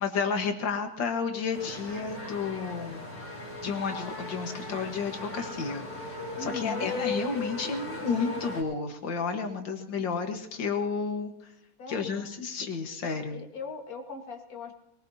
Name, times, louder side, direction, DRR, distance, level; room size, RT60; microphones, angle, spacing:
voice 1, 0.0-3.1 3.6-5.9 6.4-11.3 11.9-13.4, left 5 dB, 85° left, 4 dB, 2.2 m, -31 dB
sound 1, 1.5-8.6, left 2 dB, 25° left, 5.0 m, -37 dB
voice 2, 6.4-6.9 11.8-12.3 13.3-14.7, left 4 dB, 50° left, 3 dB, 2.2 m, -39 dB
22.0 x 19.5 x 2.8 m, 0.80 s
omnidirectional pair, 2.0 m